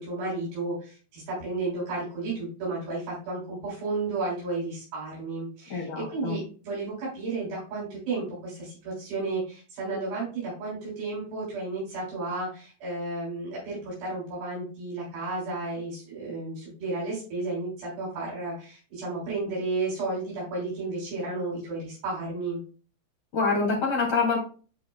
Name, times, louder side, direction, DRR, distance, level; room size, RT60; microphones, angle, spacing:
voice 1, 0.0-22.6, right 3 dB, 75° right, -6 dB, 5.6 m, -33 dB
voice 2, 5.7-6.4 23.3-24.4, left 4 dB, 40° left, -4 dB, 3.3 m, -26 dB
12.0 x 4.7 x 2.3 m, 0.39 s
omnidirectional pair, 4.8 m